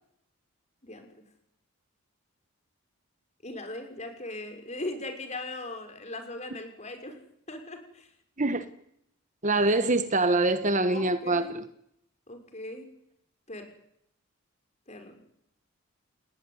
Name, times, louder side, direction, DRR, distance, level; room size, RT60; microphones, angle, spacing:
voice 1, 0.8-1.2 3.4-7.2 7.5-8.1 10.9-11.5 12.3-12.9 13.5-13.7 14.9-15.2, left 2 dB, 30° left, 6.1 m, -39 dB
voice 2, 9.4-11.7, right 2 dB, 35° right, 1.4 m, -24 dB
29.5 x 20.0 x 9.9 m
head